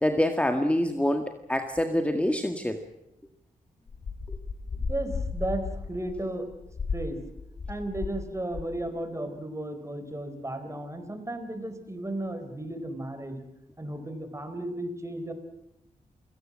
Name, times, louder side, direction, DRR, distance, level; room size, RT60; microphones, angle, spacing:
voice 1, 0.0-2.8 4.3-4.4, left 1 dB, 10° left, 5 dB, 1.8 m, -26 dB
sound 1, 3.9-8.2 8.5-8.9, left 4 dB, 60° left, 2.3 m, -34 dB
voice 2, 4.9-6.5 6.9-7.2 7.7-13.5 13.8-15.3, right 1 dB, 20° right, 9 dB, 4.4 m, -34 dB
28.0 x 17.5 x 7.6 m, 0.87 s
cardioid pair, 60°, 15 cm